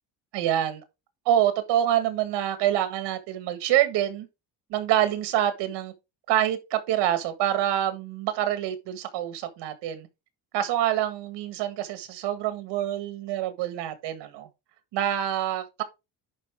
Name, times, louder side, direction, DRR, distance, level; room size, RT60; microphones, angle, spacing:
voice 1, 0.3-0.8 1.3-4.3 4.7-5.9 6.3-10.1 10.5-14.5 14.9-15.8, right 11 dB, 85° right, 1.8 m, -26 dB
10.5 x 4.5 x 3.5 m
cardioid pair, 160°, 41 cm